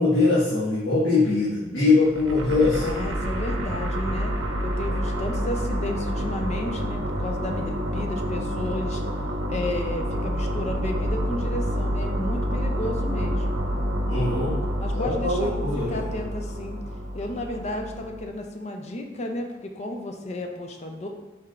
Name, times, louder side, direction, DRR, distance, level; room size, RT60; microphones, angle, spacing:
voice 1, 0.0-3.0 14.1-14.6 14.9-16.1, left 3 dB, 75° left, -11 dB, 1.4 m, -22 dB
sound 1, 2.0-18.2, equal, 80° right, 0.7 m, -28 dB
voice 2, 2.8-4.4 4.6-9.0 9.5-13.6 14.8-16.8 17.1-21.1, left 1 dB, 35° left, 4 dB, 0.4 m, -33 dB
4.7 x 4.5 x 2.4 m, 1.2 s
head